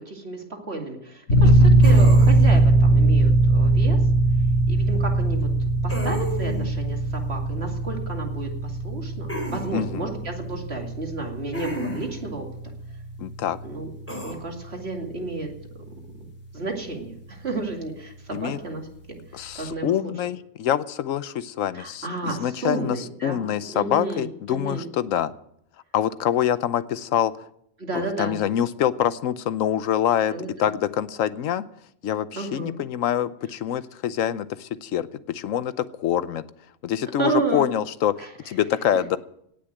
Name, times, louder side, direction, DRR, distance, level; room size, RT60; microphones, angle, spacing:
voice 1, 0.0-4.0 4.7-5.5 5.8-12.5 13.6-13.9 14.2-15.5 16.2-16.3 16.5-18.8 19.3-20.1 21.7-23.4 23.7-24.9 27.8-28.4 30.3-30.7 32.3-32.8 37.2-37.7 38.2-38.3, right 3 dB, 50° right, 2 dB, 2.7 m, -32 dB
sound 1, 1.3-15.7, right 2 dB, 55° left, 2.6 m, -21 dB
sound 2, 1.8-2.6 5.9-6.7 9.3-9.7 11.5-12.2 14.1-14.3, equal, 10° left, 3.2 m, -32 dB
voice 2, 9.7-10.1 13.2-13.6 18.3-18.6 19.3-25.3 25.9-27.3 27.9-31.6 32.0-36.4 36.8-39.2, left 10 dB, 80° left, 15 dB, 1.1 m, -25 dB
17.5 x 6.7 x 9.2 m, 0.73 s
omnidirectional pair, 1.3 m